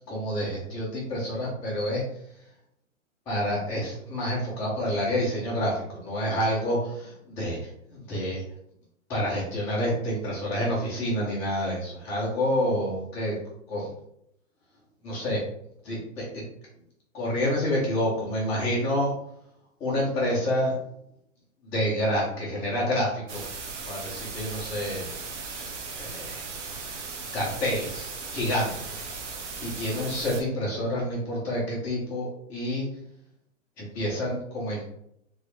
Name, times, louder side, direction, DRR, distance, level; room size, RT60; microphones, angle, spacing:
voice 1, 0.1-2.0 3.3-8.4 9.1-13.4 13.7-13.9 15.0-15.4 15.8-16.4 17.1-19.1 19.8-20.8 21.7-23.5 23.9-25.7 26.0-26.4 26.9-27.1 27.3-29.0 29.6-32.9 33.8-34.9, equal, 5° left, -9 dB, 0.3 m, -28 dB
sound 1, 23.3-30.4, right 4 dB, 65° right, 0.9 m, -37 dB
3.0 x 3.0 x 3.1 m, 0.74 s
hypercardioid pair, 125°, 39 cm